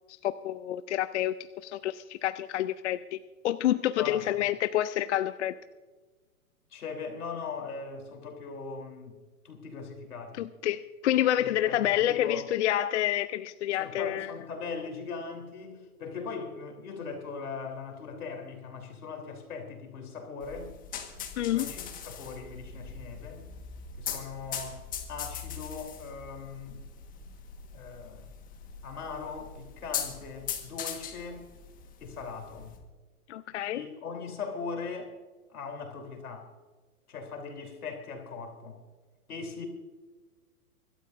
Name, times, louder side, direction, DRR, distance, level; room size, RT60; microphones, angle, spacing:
voice 1, 0.2-1.3 1.6-3.2 3.4-5.5 10.4-14.3 21.4-21.7 33.3-33.8, left 12 dB, 50° left, 12 dB, 0.5 m, -28 dB
voice 2, 4.0-4.5 6.7-10.4 11.4-12.4 13.7-20.7 21.4-23.4 24.0-24.8 25.1-26.8 27.7-28.2 28.8-31.4 32.0-32.7 33.7-35.1 35.5-36.5 37.1-38.8 39.3-39.6, left 5 dB, 75° left, 4 dB, 3.5 m, -40 dB
sound 1, 20.4-32.8, left 8 dB, 20° left, 1.4 m, -41 dB
25.0 x 12.5 x 2.6 m, 1.4 s
hypercardioid pair, 135°, 44 cm